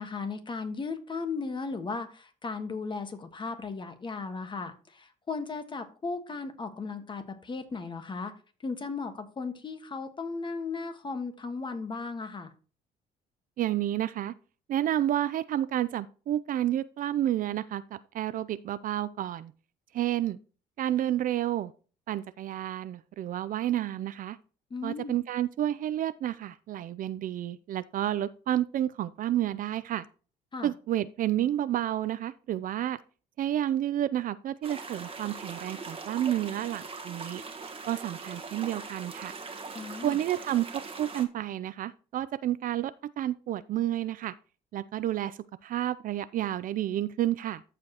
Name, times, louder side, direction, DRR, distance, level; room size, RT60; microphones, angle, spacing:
voice 1, 0.0-8.3 8.6-12.5 24.7-25.2 30.5-30.7 39.7-40.2, left 4 dB, 30° left, 1.5 m, -36 dB
voice 2, 13.6-14.3 14.7-19.5 19.9-20.4 20.8-21.7 22.1-24.4 24.8-30.0 30.6-33.0 33.4-37.4 37.9-39.3 40.0-40.7 41.0-44.3 44.7-47.6, right 12 dB, 55° right, 0.5 m, -30 dB
sound 1, 34.6-41.3, right 4 dB, 30° right, 1.4 m, -41 dB
14.0 x 5.0 x 3.0 m
cardioid pair, 110°, 17 cm